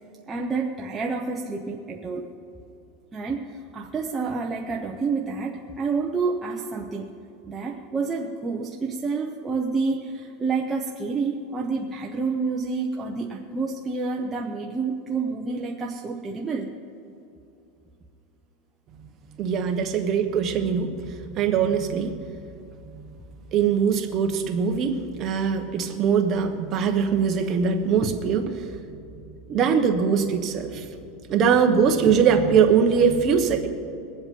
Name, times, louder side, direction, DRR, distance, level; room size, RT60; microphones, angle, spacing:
voice 1, 0.3-2.3 3.1-7.2 7.5-16.7, right 4 dB, 15° right, -1 dB, 0.7 m, -29 dB
voice 2, 19.4-20.9 21.4-22.1 23.5-28.5 29.5-30.8 31.3-33.7, right 6 dB, 30° right, 4 dB, 1.1 m, -21 dB
21.5 x 7.9 x 5.4 m, 2.7 s
supercardioid pair, 165°, 0 cm